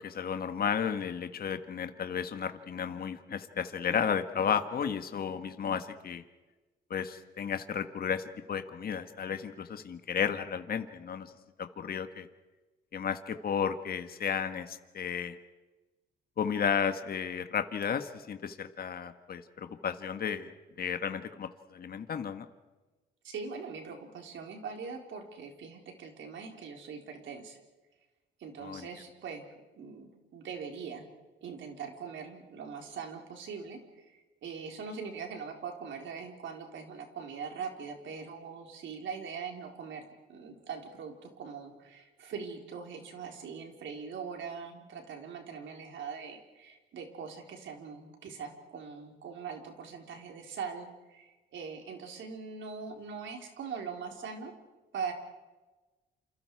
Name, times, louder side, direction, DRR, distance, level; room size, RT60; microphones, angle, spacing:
voice 1, 0.0-6.2 6.9-11.3 11.6-12.3 12.9-15.4 16.4-22.5 28.6-28.9, left 7 dB, 50° left, 8 dB, 1.5 m, -33 dB
voice 2, 23.2-27.6 28.4-29.4 29.8-31.0 31.4-40.0 40.3-54.5 54.9-55.1, right 6 dB, 70° right, 3 dB, 4.1 m, -42 dB
28.5 x 27.5 x 4.8 m, 1.2 s
cardioid pair, 90°, 20 cm